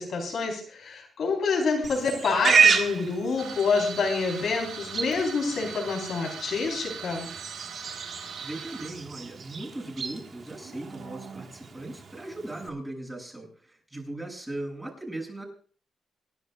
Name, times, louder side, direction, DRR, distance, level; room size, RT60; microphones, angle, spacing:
voice 1, 0.0-7.3, left 4 dB, 65° left, 0 dB, 4.4 m, -27 dB
Livestock farm animals working animals, 1.8-12.7, right 5 dB, 55° right, 1.8 m, -30 dB
sound 1, 3.4-8.9, right 7 dB, 90° right, 2.4 m, -41 dB
voice 2, 8.4-15.4, right 1 dB, 15° right, -3 dB, 7.4 m, -38 dB
27.5 x 11.5 x 2.5 m, 0.43 s
cardioid pair, 90°, 0 cm